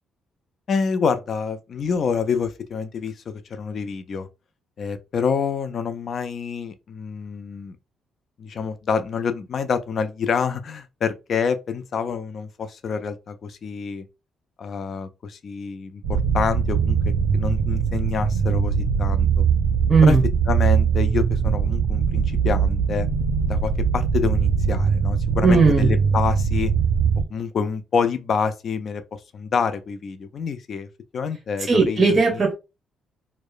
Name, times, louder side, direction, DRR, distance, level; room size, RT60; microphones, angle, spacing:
voice 1, 0.7-4.3 4.8-7.8 8.4-14.1 14.6-19.5 20.0-20.2 20.5-23.1 23.5-26.7 27.3-32.2, left 6 dB, 55° left, 0.3 m, -27 dB
sound 1, 16.0-27.2, right 6 dB, 85° right, 0.4 m, -21 dB
voice 2, 19.9-20.2 25.4-25.9 31.7-32.6, right 4 dB, 30° right, 0.8 m, -17 dB
2.8 x 2.0 x 2.3 m
cardioid pair, 90°, 0 cm